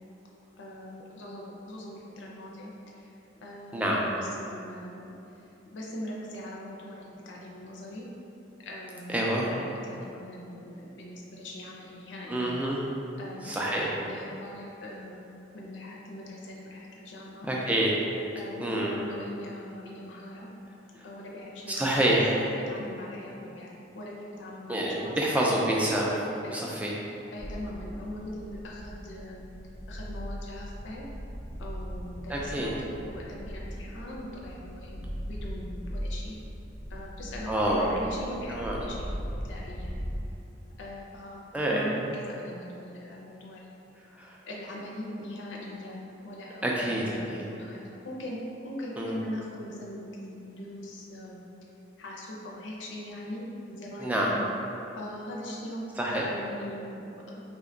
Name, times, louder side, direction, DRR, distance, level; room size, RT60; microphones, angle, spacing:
voice 1, 0.6-3.1 3.4-5.1 5.7-8.1 8.6-12.5 13.2-15.2 15.5-17.5 18.4-20.5 21.0-22.0 22.7-25.5 26.4-26.6 27.3-29.4 29.9-31.1 31.6-36.3 36.9-39.1 39.4-40.0 40.8-41.4 41.7-43.7 44.5-51.4 52.0-54.4 55.0-57.4, left 1 dB, 75° left, -3 dB, 0.5 m, -41 dB
voice 2, 3.7-4.0 9.1-9.5 12.3-12.8 13.4-13.9 17.4-17.9 18.6-18.9 21.7-22.5 24.7-26.9 32.3-32.7 37.5-37.9 38.5-38.8 41.5-41.9 44.1-44.4 46.6-47.4 49.0-49.1 54.0-54.3 56.0-56.3, right 1 dB, 10° right, -4 dB, 0.3 m, -27 dB
sound 1, 27.4-40.2, equal, 45° right, 0.7 m, -39 dB
2.8 x 2.2 x 3.7 m, 2.8 s
head